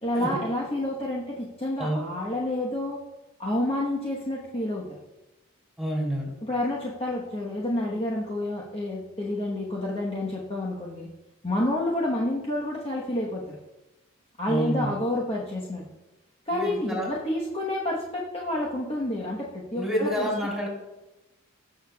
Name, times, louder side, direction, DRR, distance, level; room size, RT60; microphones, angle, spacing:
voice 1, 0.0-3.0 3.4-5.0 6.4-11.1 11.4-13.6 14.4-15.8 16.5-20.3, left 1 dB, 25° left, -5 dB, 1.1 m, -29 dB
voice 2, 5.8-6.3 14.5-14.9 16.5-17.1 19.8-20.7, equal, ahead, -4 dB, 3.0 m, -28 dB
17.0 x 6.7 x 2.3 m, 1.0 s
head